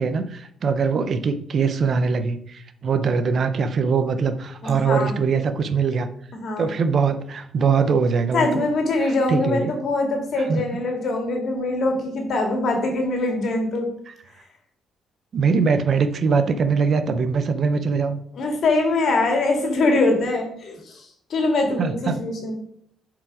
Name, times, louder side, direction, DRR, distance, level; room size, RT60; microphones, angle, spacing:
voice 1, 0.0-6.1 6.6-8.7 9.0-9.7 10.5-10.6 14.1-14.2 15.3-18.2 21.8-22.2, right 5 dB, 55° right, 10 dB, 0.7 m, -22 dB
voice 2, 4.6-5.2 6.3-6.7 8.3-13.9 18.3-21.0 21.3-22.5, left 2 dB, 60° left, 2 dB, 2.2 m, -23 dB
7.3 x 4.8 x 4.9 m, 0.67 s
cardioid pair, 90°, 0 cm